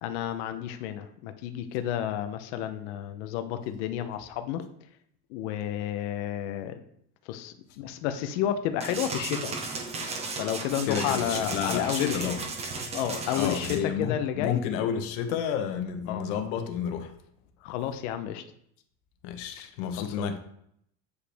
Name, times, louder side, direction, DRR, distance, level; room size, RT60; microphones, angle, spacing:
voice 1, 0.0-4.7 5.3-6.8 7.3-9.5 10.4-12.3 12.9-14.6 16.1-16.2 17.6-18.4 20.0-20.3, left 10 dB, 90° left, 8 dB, 0.7 m, -31 dB
sound 1, 8.8-13.8, right 3 dB, 20° right, 0.7 m, -35 dB
voice 2, 10.9-12.4 13.3-17.1 19.2-20.4, left 8 dB, 75° left, 7 dB, 1.1 m, -30 dB
8.1 x 4.9 x 3.4 m, 0.71 s
cardioid pair, 175°, 33 cm